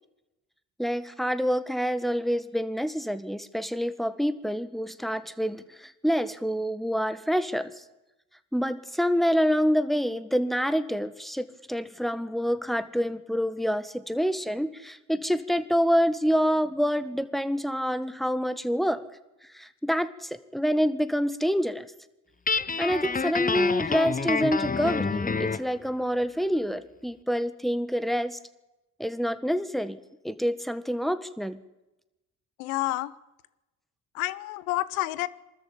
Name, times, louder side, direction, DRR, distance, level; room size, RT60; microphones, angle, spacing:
voice 1, 0.8-7.8 8.5-19.0 19.5-21.9 22.8-28.4 29.0-31.6, equal, ahead, 13 dB, 1.6 m, -27 dB
Guitar, 22.5-25.7, left 5 dB, 20° left, 0.8 m, -28 dB
voice 2, 32.6-33.1 34.1-35.3, left 17 dB, 85° left, 19 dB, 0.8 m, -29 dB
23.5 x 13.5 x 8.8 m, 0.99 s
hypercardioid pair, 45°, 41 cm